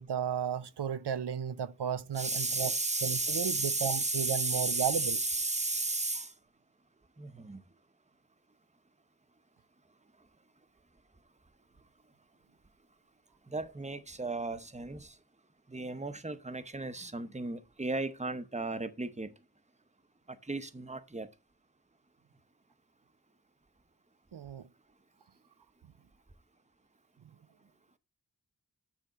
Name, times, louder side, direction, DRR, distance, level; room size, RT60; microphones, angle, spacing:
voice 1, 0.0-2.7 3.0-5.2 24.3-24.6, right 8 dB, 90° right, 0.5 m, -34 dB
voice 2, 2.2-6.3 7.2-7.6 13.5-15.1 15.7-19.3 20.3-21.3, right 2 dB, 15° right, 0.7 m, -34 dB
9.2 x 3.4 x 4.8 m
wide cardioid pair, 40°, 39 cm